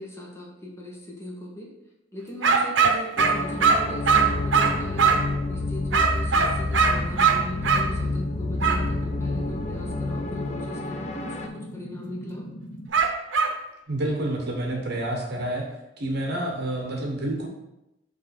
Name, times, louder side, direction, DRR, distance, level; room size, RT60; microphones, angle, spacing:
voice 1, 0.0-1.7 2.1-5.2 5.5-12.5, left 1 dB, 15° left, -3 dB, 1.3 m, -39 dB
sound 1, 2.4-5.3 5.9-7.9 8.6-8.8 12.9-13.6, right 5 dB, 80° right, 0.7 m, -21 dB
sound 2, 3.2-11.5, left 2 dB, 35° left, 0.6 m, -29 dB
sound 3, 6.7-12.9, equal, 85° left, 1.4 m, -40 dB
voice 2, 13.9-15.6 16.0-17.5, right 1 dB, 60° right, 1 dB, 1.1 m, -28 dB
6.7 x 3.1 x 5.8 m, 0.89 s
head